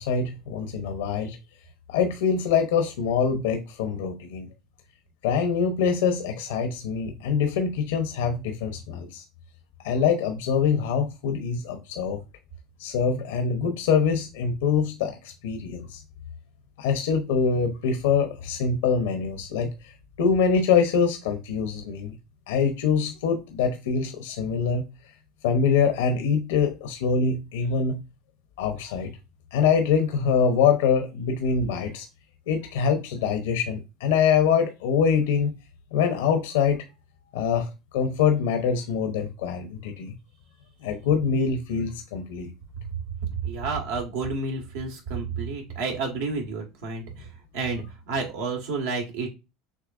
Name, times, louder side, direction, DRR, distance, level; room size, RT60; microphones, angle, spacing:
voice 1, 0.0-1.4 1.9-4.5 5.2-9.2 9.8-12.2 12.8-15.2 15.4-16.0 16.8-19.7 20.2-22.1 22.5-24.8 25.4-28.0 28.6-29.1 29.5-32.1 32.5-35.6 35.9-36.8 37.3-40.1 40.8-42.5, left 6 dB, 90° left, 0.8 m, -24 dB
voice 2, 43.4-49.3, right 4 dB, 85° right, 1.5 m, -30 dB
6.3 x 2.9 x 2.5 m
supercardioid pair, 115°, 0 cm